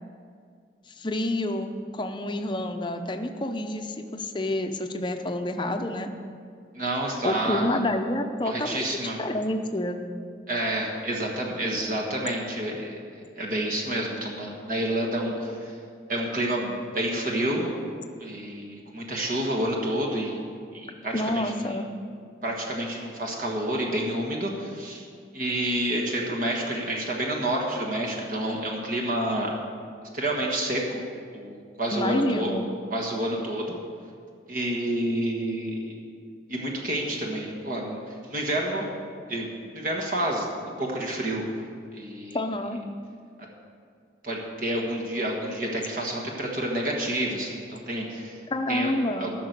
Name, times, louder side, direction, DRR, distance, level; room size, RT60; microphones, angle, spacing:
voice 1, 1.0-6.1 7.2-10.0 21.1-21.9 31.9-32.7 42.3-42.8 48.5-49.3, left 1 dB, 25° left, 6 dB, 0.7 m, -28 dB
voice 2, 6.7-7.8 8.4-9.2 10.5-15.7 16.1-17.8 18.2-20.4 20.7-21.8 22.4-25.0 25.3-29.5 30.1-31.0 31.3-32.5 32.9-33.8 34.5-35.9 36.5-38.9 39.3-39.5 39.7-40.5 40.8-41.4 41.9-42.4 44.2-48.4 48.7-48.9 49.2-49.3, right 1 dB, 50° right, -1 dB, 1.5 m, -29 dB
14.5 x 6.1 x 6.7 m, 2.2 s
head